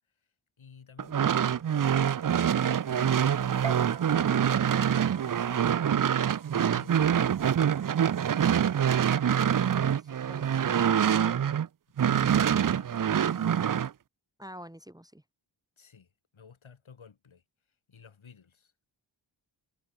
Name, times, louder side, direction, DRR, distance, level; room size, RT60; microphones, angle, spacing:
voice 1, 0.6-3.7 4.2-7.4 12.1-13.5 15.8-17.4 17.9-18.7, left 6 dB, 80° left, 4.2 m, -53 dB
sound 1, 1.0-11.7 12.0-13.9, right 9 dB, 45° right, 0.6 m, -25 dB
sound 2, 3.6-10.4, right 6 dB, 80° right, 4.4 m, -47 dB
voice 2, 14.4-15.2, equal, 10° right, 1.2 m, -48 dB
wide cardioid pair, 70°, 47 cm